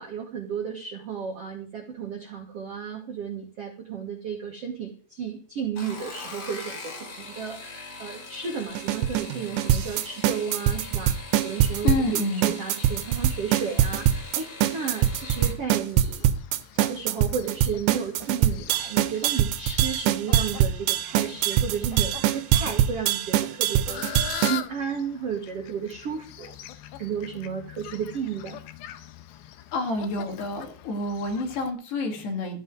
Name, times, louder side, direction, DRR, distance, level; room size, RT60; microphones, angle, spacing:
voice 1, 0.0-11.9 12.4-16.2 16.7-26.5 27.0-28.6, right 6 dB, 60° right, 1 dB, 1.5 m, -33 dB
sound 1, 5.6-15.6 16.8-17.3 17.7-18.1 18.4-18.5, left 3 dB, 45° left, 3.3 m, -42 dB
sound 2, 8.8-24.6, right 11 dB, 80° right, 2.8 m, -23 dB
voice 2, 11.8-12.5 29.7-32.6, left 2 dB, 70° left, 3 dB, 4.5 m, -28 dB
Fowl, 15.3-31.7, left 12 dB, 85° left, 3.1 m, -42 dB
13.5 x 5.6 x 9.2 m, 0.43 s
omnidirectional pair, 5.0 m